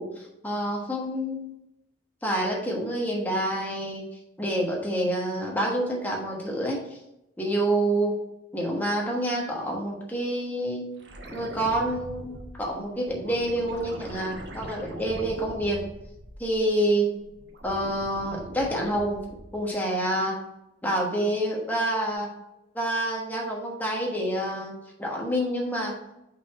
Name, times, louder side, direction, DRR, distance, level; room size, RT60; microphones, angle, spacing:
voice 1, 0.0-1.5 2.2-4.0 4.4-6.8 7.4-8.2 8.5-10.9 11.3-15.8 16.4-17.1 17.6-20.4 20.8-22.3 22.7-24.7 25.0-26.0, right 1 dB, 10° left, -2 dB, 1.2 m, -27 dB
sound 1, 11.0-16.8 17.2-19.7 22.1-22.2, right 1 dB, 80° right, 1.0 m, -42 dB
5.8 x 4.1 x 4.2 m, 0.88 s
head